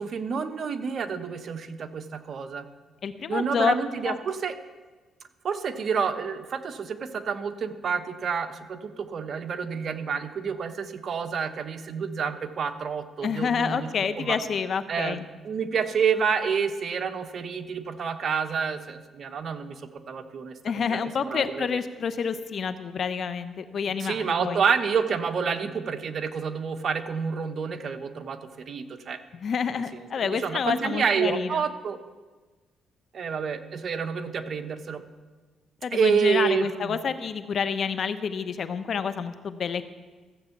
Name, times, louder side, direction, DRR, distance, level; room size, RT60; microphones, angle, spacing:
voice 1, 0.0-2.7 3.3-4.6 5.4-13.9 14.2-14.4 14.9-21.8 24.0-29.2 29.9-32.0 33.1-35.0 35.9-37.0, right 6 dB, 55° right, 8 dB, 1.0 m, -29 dB
voice 2, 3.0-3.7 4.0-4.2 13.2-15.2 20.6-24.6 29.3-31.6 35.8-39.9, left 6 dB, 55° left, 11 dB, 0.8 m, -28 dB
15.0 x 7.9 x 7.2 m, 1.3 s
cardioid pair, 90°, 0 cm